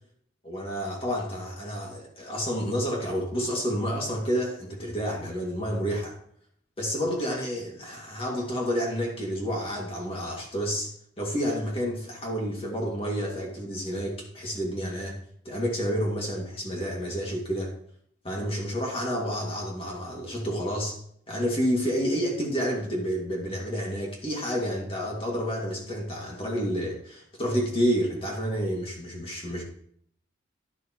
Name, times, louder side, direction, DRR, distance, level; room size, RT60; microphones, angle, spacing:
voice 1, 0.4-6.1 6.8-15.2 15.4-17.7 18.2-21.0 21.3-29.6, equal, 30° left, -1 dB, 2.1 m, -29 dB
11.5 x 11.5 x 3.0 m, 0.63 s
head